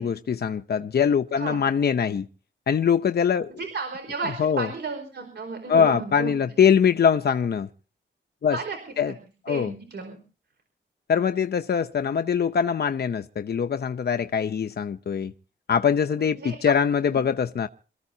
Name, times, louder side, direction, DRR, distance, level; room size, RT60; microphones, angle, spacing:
voice 1, 0.0-2.3 2.7-3.5 4.4-4.7 5.7-7.7 8.4-8.6 9.0-9.1 9.5-9.7 11.1-15.3 15.7-17.7, left 7 dB, 55° left, 0.8 m, -23 dB
voice 2, 3.6-6.3 8.5-9.1 9.5-10.2 16.1-16.7 17.1-17.2, right 4 dB, 60° right, 4.6 m, -34 dB
27.0 x 14.5 x 2.8 m
wide cardioid pair, 150°, 20 cm